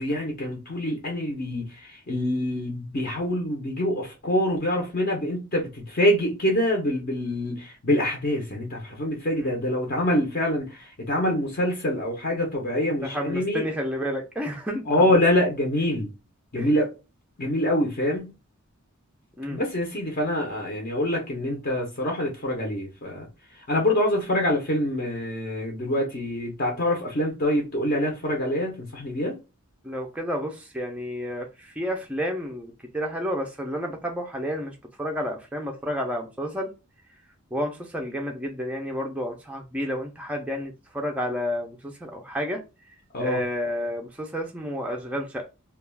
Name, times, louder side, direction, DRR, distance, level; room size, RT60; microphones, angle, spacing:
voice 1, 0.0-13.7 14.9-16.1 16.5-16.9 17.4-18.3 19.5-23.3 23.7-29.4 43.1-43.4, left 1 dB, 40° left, 0.6 m, -25 dB
voice 2, 13.0-15.0 16.6-16.7 19.4-19.6 29.8-36.7 37.5-42.6 43.2-45.5, equal, 5° right, 0.3 m, -30 dB
2.2 x 2.2 x 3.2 m
head